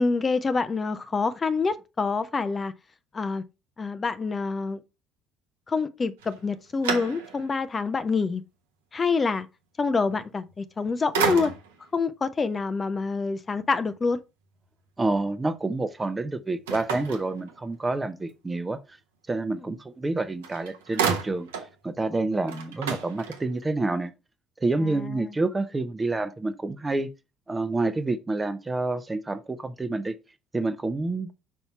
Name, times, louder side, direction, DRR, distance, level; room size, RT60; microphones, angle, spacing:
voice 1, 0.0-2.7 3.1-3.4 3.8-4.8 5.7-8.4 8.9-9.5 9.8-11.5 11.9-14.2 24.8-25.3, left 4 dB, 30° left, 0.6 m, -26 dB
sound 1, 6.2-7.6 8.1-8.2 10.5-10.8 11.1-11.9 16.7-17.9 20.0-20.1 20.4-21.7 22.1-22.2 22.4-23.7, right 6 dB, 75° right, 1.0 m, -31 dB
voice 2, 15.0-18.8 19.3-21.5 21.8-24.1 24.6-27.1 27.5-30.1 30.5-31.3, right 2 dB, 20° right, 0.8 m, -28 dB
5.6 x 4.1 x 4.3 m
figure-of-eight pair, 55°, 0 cm